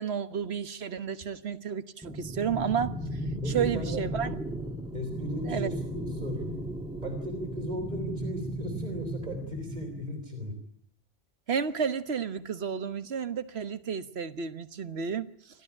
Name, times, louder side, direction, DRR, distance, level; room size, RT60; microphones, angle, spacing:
voice 1, 0.0-3.0 3.5-4.4 5.4-5.7 11.5-15.6, right 7 dB, 65° right, 1.5 m, -31 dB
sound 1, 2.0-10.0, right 1 dB, 5° right, 1.8 m, -35 dB
voice 2, 3.4-4.0 4.9-6.5 7.0-10.6, equal, 40° right, 3.8 m, -36 dB
28.0 x 13.0 x 9.9 m
omnidirectional pair, 1.2 m